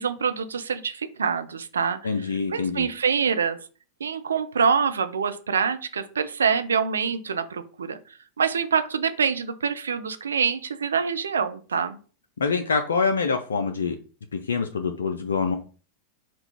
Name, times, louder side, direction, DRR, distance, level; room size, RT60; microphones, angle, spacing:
voice 1, 0.0-3.6 4.0-8.0 8.4-12.0, right 6 dB, 70° right, 10 dB, 0.4 m, -25 dB
voice 2, 2.0-2.9 12.4-14.0 14.3-15.6, left 5 dB, 70° left, 6 dB, 0.4 m, -25 dB
3.7 x 2.4 x 4.5 m, 0.38 s
figure-of-eight pair, 90°, 0 cm